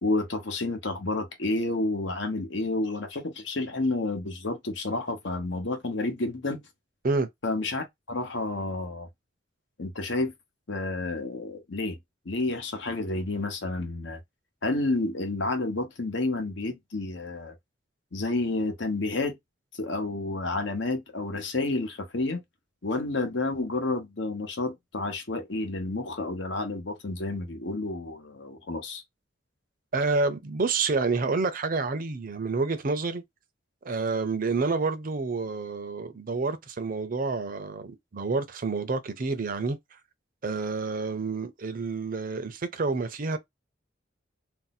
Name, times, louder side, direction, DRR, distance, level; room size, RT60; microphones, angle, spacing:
voice 1, 0.0-6.6 7.4-9.1 9.8-10.3 10.7-12.0 12.2-14.2 14.6-17.5 18.1-19.4 19.7-22.4 22.8-29.0, left 2 dB, 70° left, 1.0 m, -30 dB
voice 2, 29.9-33.2 33.8-39.8 40.4-43.4, right 3 dB, 50° right, 0.6 m, -28 dB
2.7 x 2.1 x 4.0 m
head